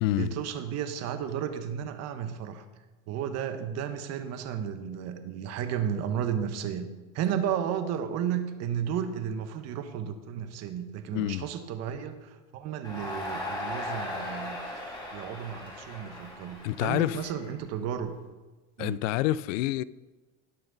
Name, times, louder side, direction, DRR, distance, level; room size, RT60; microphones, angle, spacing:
voice 1, 0.2-2.6 3.1-6.9 7.1-18.1 18.8-19.0, right 8 dB, 40° right, 1.1 m, -33 dB
voice 2, 11.1-11.5 16.6-17.3 18.8-19.8, left 15 dB, 75° left, 0.5 m, -27 dB
Crowd, 12.8-18.0, left 1 dB, 10° left, 2.9 m, -38 dB
17.5 x 6.0 x 4.0 m
supercardioid pair, 145°, 38 cm